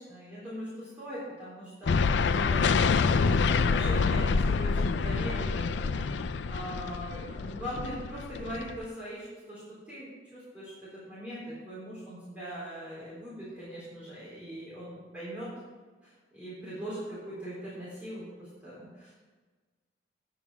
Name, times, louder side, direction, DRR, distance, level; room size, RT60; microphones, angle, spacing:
voice 1, 0.0-15.5 16.0-19.2, equal, 10° right, -10 dB, 3.7 m, -41 dB
sound 1, 1.9-8.8, left 5 dB, 80° left, 0.4 m, -27 dB
8.9 x 7.1 x 7.2 m, 1.4 s
head